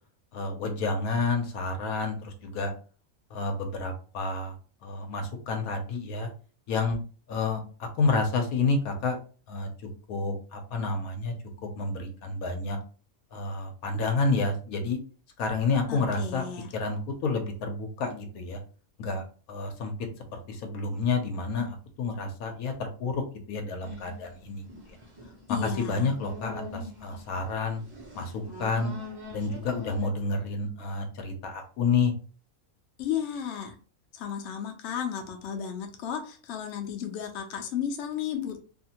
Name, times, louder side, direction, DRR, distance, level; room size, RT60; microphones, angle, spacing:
voice 1, 0.3-2.7 3.3-4.5 4.8-6.3 6.7-7.0 7.3-9.2 9.5-9.7 10.1-11.3 11.6-12.8 13.3-15.0 15.4-16.5 16.7-18.6 19.0-19.9 20.3-25.0 25.5-27.8 28.1-28.9 29.3-32.1, left 3 dB, 80° left, 5 dB, 1.1 m, -29 dB
voice 2, 15.9-16.7 25.5-26.1 33.0-33.8 34.1-38.7, left 8 dB, 60° left, 3 dB, 0.8 m, -33 dB
sound 1, 23.8-30.1, left 2 dB, 25° right, 0.6 m, -44 dB
2.7 x 2.5 x 2.8 m, 0.39 s
omnidirectional pair, 1.5 m